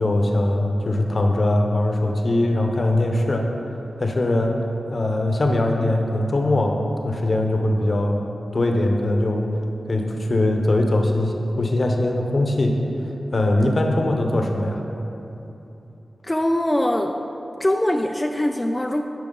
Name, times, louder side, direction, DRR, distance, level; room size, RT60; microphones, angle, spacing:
voice 1, 0.0-3.5 4.0-6.8 7.0-8.2 8.5-9.5 9.9-12.8 13.3-14.8, left 1 dB, 55° left, 2 dB, 0.8 m, -21 dB
voice 2, 16.2-17.2 17.6-19.0, left 1 dB, 20° left, 3 dB, 0.4 m, -22 dB
11.0 x 4.7 x 3.9 m, 3.0 s
cardioid pair, 45°, 0 cm